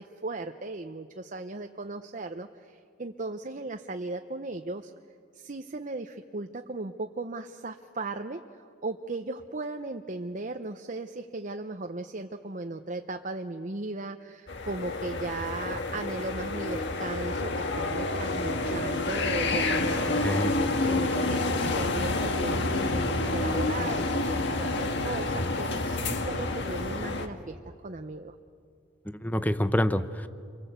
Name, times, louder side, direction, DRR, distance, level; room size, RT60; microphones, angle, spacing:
voice 1, 0.0-4.9 5.3-8.4 8.8-20.3 20.9-28.3, right 2 dB, 40° right, 6 dB, 0.8 m, -37 dB
sound 1, 14.5-27.3, left 2 dB, 60° left, 1.7 m, -29 dB
voice 2, 20.2-20.6 29.1-30.3, equal, 10° left, 12 dB, 0.8 m, -27 dB
28.5 x 24.0 x 8.1 m, 2.4 s
head